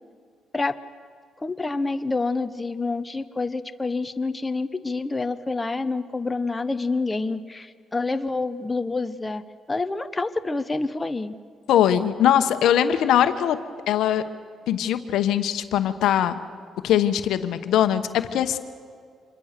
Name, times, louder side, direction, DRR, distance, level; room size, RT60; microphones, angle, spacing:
voice 1, 1.4-11.3, left 3 dB, 20° left, 10 dB, 0.9 m, -27 dB
voice 2, 11.7-13.6 13.9-14.2 14.7-16.3 16.8-18.6, left 10 dB, 80° left, 10 dB, 1.1 m, -21 dB
26.5 x 22.0 x 6.7 m, 2.1 s
cardioid pair, 90°, 0 cm